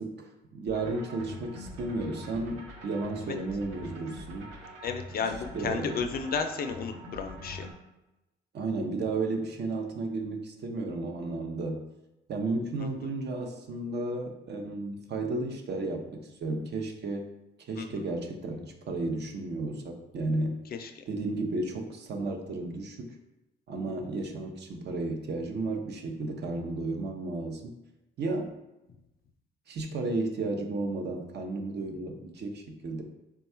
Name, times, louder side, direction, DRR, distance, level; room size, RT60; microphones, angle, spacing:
voice 1, 0.0-4.5 5.5-5.9 8.5-11.9 12.3-17.3 17.6-20.6 21.1-23.1 23.7-27.7 28.2-28.6 29.7-33.0, right 2 dB, 60° right, 3 dB, 0.6 m, -33 dB
sound 1, 0.7-7.7, left 1 dB, 85° right, 1.0 m, -44 dB
voice 2, 4.8-7.7 12.8-12.9 17.8-17.9 20.7-20.9, left 5 dB, 50° left, 7 dB, 0.4 m, -33 dB
3.6 x 2.3 x 4.2 m, 0.96 s
cardioid pair, 90°, 20 cm